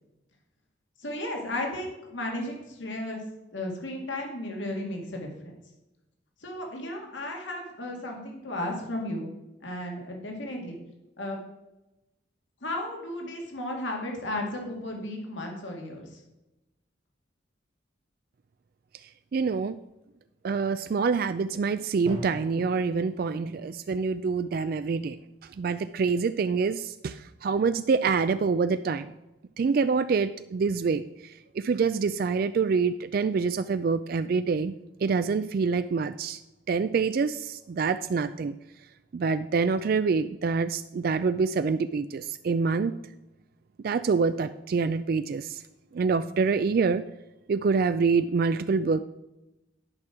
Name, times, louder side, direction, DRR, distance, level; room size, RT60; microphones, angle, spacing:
voice 1, 1.0-3.2 3.5-5.5 6.4-9.3 9.6-10.8 11.2-11.4 12.6-16.2, left 1 dB, 80° left, 1 dB, 2.1 m, -34 dB
voice 2, 19.3-19.8 20.4-25.2 25.4-29.1 29.6-34.7 35.0-36.4 36.7-38.6 39.1-42.9 43.8-45.6 45.9-47.0 47.5-49.0, right 5 dB, 50° right, 12 dB, 0.3 m, -26 dB
Drum, 22.1-24.0, equal, 30° right, 1.0 m, -42 dB
11.0 x 6.1 x 4.8 m, 0.97 s
head